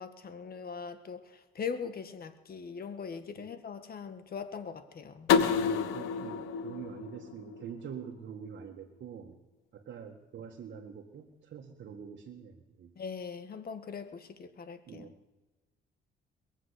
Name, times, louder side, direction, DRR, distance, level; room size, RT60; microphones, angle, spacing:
voice 1, 0.0-5.3 12.9-15.1, left 6 dB, 50° left, 10 dB, 1.7 m, -41 dB
sound 1, 5.3-8.1, left 7 dB, 90° left, 1.1 m, -29 dB
voice 2, 5.4-9.4 9.7-12.9 14.9-15.1, right 7 dB, 65° right, 1 dB, 1.7 m, -45 dB
22.0 x 7.3 x 8.3 m, 1.2 s
cardioid pair, 90°, 20 cm